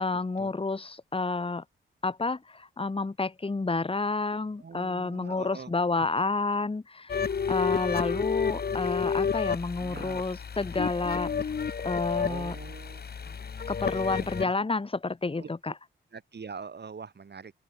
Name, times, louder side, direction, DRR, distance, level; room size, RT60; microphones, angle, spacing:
voice 1, 0.0-1.6 2.0-11.3 11.8-12.5 13.7-15.7, left 3 dB, 25° left, 1.8 m, -30 dB
voice 2, 4.6-5.7 9.8-10.2 12.3-13.4 13.9-14.6 15.4-15.5 16.1-17.5, right 5 dB, 55° right, 5.5 m, -44 dB
sound 1, 7.1-14.4, left 6 dB, 50° left, 1.2 m, -31 dB
open air
cardioid pair, 65°, 21 cm